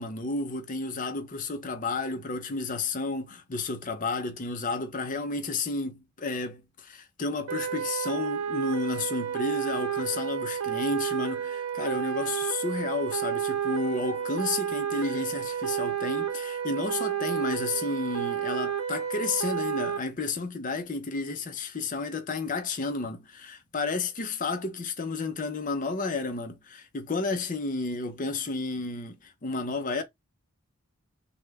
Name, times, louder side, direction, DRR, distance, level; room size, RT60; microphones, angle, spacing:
voice 1, 0.0-30.0, left 3 dB, 35° left, 0.5 m, -32 dB
sound 1, 7.5-20.0, right 8 dB, 70° right, 0.6 m, -31 dB
3.2 x 2.1 x 3.4 m
head